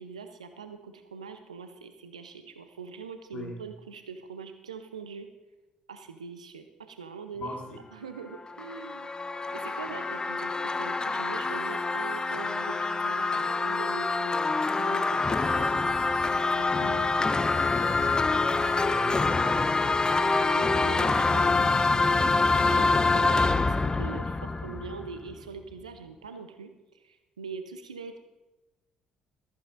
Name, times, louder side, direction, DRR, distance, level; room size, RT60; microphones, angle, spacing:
voice 1, 0.0-5.3 5.9-9.1 9.5-15.4 16.5-17.1 20.5-28.2, right 5 dB, 85° right, 8 dB, 0.7 m, -43 dB
voice 2, 7.3-7.8 15.1-15.9 17.6-20.5, left 2 dB, 50° left, -1 dB, 3.0 m, -39 dB
sound 1, 8.3-25.3, left 3 dB, 20° left, 0.6 m, -26 dB
14.5 x 14.0 x 2.6 m, 1.0 s
figure-of-eight pair, 45°, 3 cm